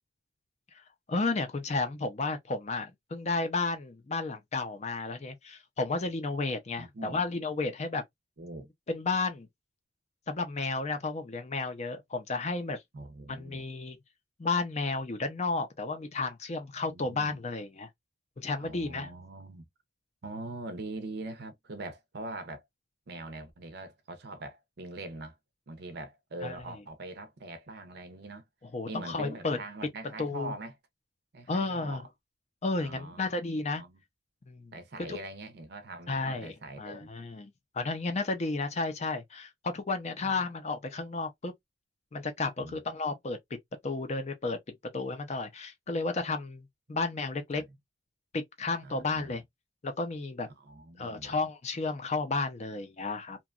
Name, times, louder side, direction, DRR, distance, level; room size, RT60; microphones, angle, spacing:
voice 1, 1.1-8.0 8.9-9.5 10.3-12.8 13.3-14.0 14.4-17.9 18.4-19.2 26.4-26.6 28.6-29.6 30.2-30.5 31.5-32.0 32.6-33.8 34.5-34.7 35.0-35.2 36.1-41.5 42.1-43.4 43.8-44.6 44.9-47.6 48.3-49.4 49.8-50.5 51.0-53.4, left 3 dB, 35° left, 0.5 m, -32 dB
voice 2, 6.8-7.2 8.4-8.7 12.9-13.6 16.9-17.4 18.6-19.7 20.2-22.6 23.1-25.3 25.7-28.4 28.9-30.7 31.3-32.0 32.8-33.3 33.7-34.0 34.7-37.1 40.2-40.3 42.6-42.8 47.5-47.7 48.8-49.3 50.6-51.4, right 2 dB, 55° right, 0.6 m, -43 dB
2.8 x 2.2 x 2.3 m
head